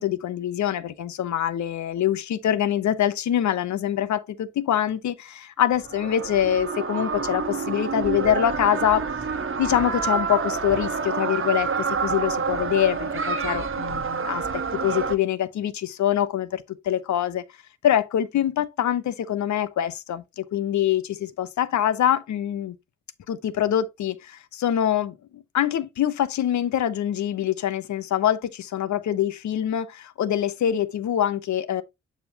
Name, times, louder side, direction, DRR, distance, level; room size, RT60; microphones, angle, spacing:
voice 1, 0.0-9.0 9.6-17.4 17.8-22.8 23.3-31.8, left 10 dB, 65° left, 0.8 m, -24 dB
sound 1, 5.7-15.1, right 5 dB, 40° right, 1.2 m, -28 dB
6.9 x 5.9 x 2.8 m
hypercardioid pair, 40°, 31 cm